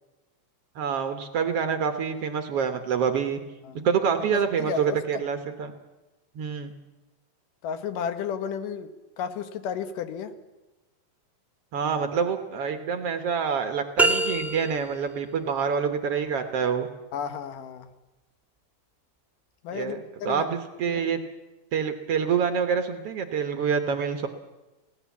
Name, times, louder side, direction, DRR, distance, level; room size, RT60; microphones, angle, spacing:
voice 1, 0.7-3.4 3.8-5.7 6.3-6.7 11.7-16.9 19.7-21.2 21.7-24.3, right 6 dB, 60° right, 6 dB, 1.7 m, -26 dB
voice 2, 4.3-5.3 7.6-8.9 9.2-10.3 17.1-17.9 19.6-20.5 20.9-21.0, left 7 dB, 80° left, 9 dB, 2.8 m, -33 dB
sound 1, 14.0-15.1, right 2 dB, ahead, 1.4 m, -24 dB
26.0 x 17.5 x 7.2 m, 1.1 s
omnidirectional pair, 3.8 m